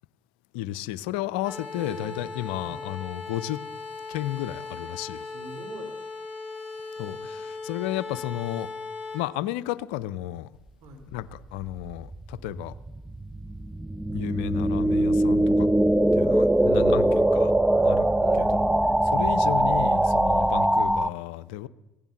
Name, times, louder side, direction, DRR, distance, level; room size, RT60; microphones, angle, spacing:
voice 1, 0.5-3.6 4.1-5.3 7.0-8.7 9.1-10.5 11.1-12.7 14.1-15.7 16.1-17.5 17.8-18.1 18.4-18.5 19.1-21.7, left 14 dB, 75° left, 17 dB, 0.5 m, -33 dB
Entwarnung komprimiert, 1.4-9.2, left 4 dB, 20° right, 7.1 m, -38 dB
voice 2, 1.7-2.2 2.6-2.8 5.2-5.9 10.8-11.0 16.6-17.0 18.2-19.0, right 3 dB, 60° right, 4 dB, 3.0 m, -43 dB
sound 1, 11.8-21.1, right 1 dB, 5° right, 0.4 m, -22 dB
15.5 x 10.5 x 7.0 m, 1.0 s
hypercardioid pair, 65°, 5 cm